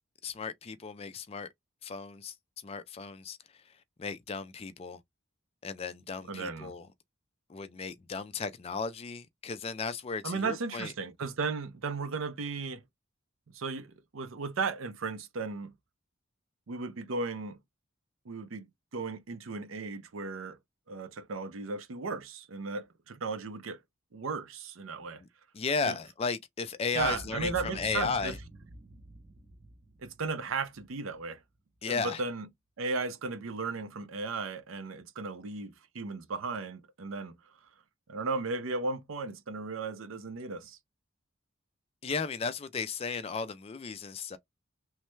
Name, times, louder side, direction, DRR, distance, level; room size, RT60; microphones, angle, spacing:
voice 1, 0.2-1.5 1.8-2.3 2.6-3.4 4.0-5.0 5.6-6.9 7.5-10.9 25.5-28.4 31.8-32.2 42.0-44.4, left 5 dB, 30° left, 0.3 m, -35 dB
voice 2, 6.3-6.7 10.2-12.8 13.5-15.7 16.7-17.6 18.3-20.6 20.9-23.8 24.1-25.2 25.8-26.0 26.9-28.3 30.0-31.4 31.9-32.5 32.8-37.4 38.1-40.8, right 4 dB, 75° right, 0.5 m, -35 dB
Boom, 26.9-31.2, right 1 dB, 30° right, 0.7 m, -47 dB
3.1 x 2.1 x 3.0 m
head